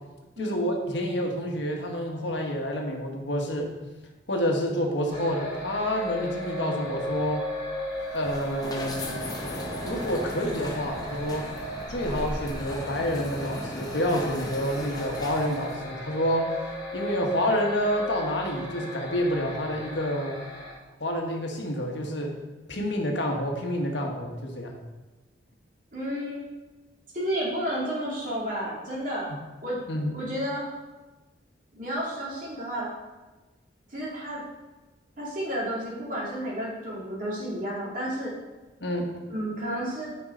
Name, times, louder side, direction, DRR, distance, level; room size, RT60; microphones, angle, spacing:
voice 1, 0.4-3.7 4.3-7.5 8.1-9.2 9.8-11.5 11.9-16.5 16.9-20.4 21.0-22.3 22.7-24.7 29.9-30.2 38.8-39.1, equal, 75° left, 1 dB, 1.3 m, -28 dB
sound 1, 5.1-20.7, equal, 50° left, 2.4 m, -37 dB
sound 2, 8.0-15.8, left 1 dB, 20° left, 0.8 m, -37 dB
voice 2, 25.9-26.4 27.1-29.3 29.6-29.8 30.1-30.7 31.7-32.9 33.9-34.4 35.2-38.3 39.3-40.1, equal, 45° right, -6 dB, 2.7 m, -31 dB
9.5 x 5.4 x 3.9 m, 1.2 s
head